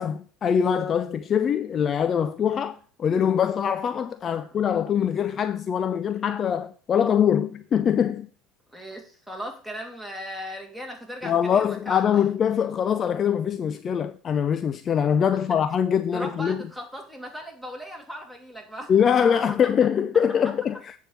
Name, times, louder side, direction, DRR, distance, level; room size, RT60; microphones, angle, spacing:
voice 1, 0.0-8.3 11.2-16.6 18.9-20.8, left 8 dB, 40° left, 0.4 m, -23 dB
voice 2, 8.7-12.3 16.1-18.9, equal, 5° left, 3.0 m, -38 dB
8.0 x 4.6 x 6.8 m
hypercardioid pair, 85°, 0 cm